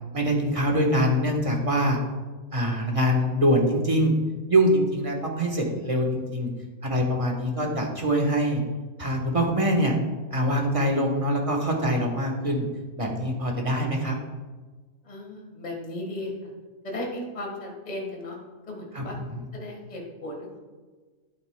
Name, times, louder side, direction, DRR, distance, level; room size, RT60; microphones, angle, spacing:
voice 1, 0.1-2.0 2.5-4.1 4.5-6.5 6.8-8.6 9.0-9.9 10.3-12.7 13.0-14.2 18.9-19.5, equal, 25° right, 1 dB, 1.2 m, -24 dB
voice 2, 15.0-16.5 16.8-18.4 18.7-19.2 19.5-20.6, left 1 dB, 25° left, 0 dB, 1.6 m, -35 dB
12.5 x 8.0 x 2.2 m, 1.4 s
omnidirectional pair, 1.6 m